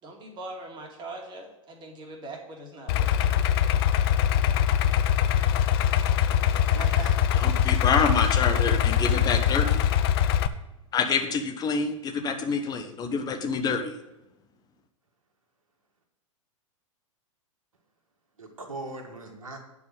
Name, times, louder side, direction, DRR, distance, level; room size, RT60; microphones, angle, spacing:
voice 1, 0.0-3.4, right 2 dB, 25° right, 1 dB, 2.3 m, -42 dB
Idling, 2.9-10.5, left 10 dB, 45° left, 0.7 m, -22 dB
voice 2, 6.7-7.2 18.4-19.6, right 3 dB, 75° right, 2 dB, 2.1 m, -39 dB
voice 3, 7.4-10.0 10.9-14.0, left 5 dB, 25° left, 5 dB, 1.2 m, -27 dB
9.6 x 4.9 x 7.1 m, 0.96 s
figure-of-eight pair, 100°, 17 cm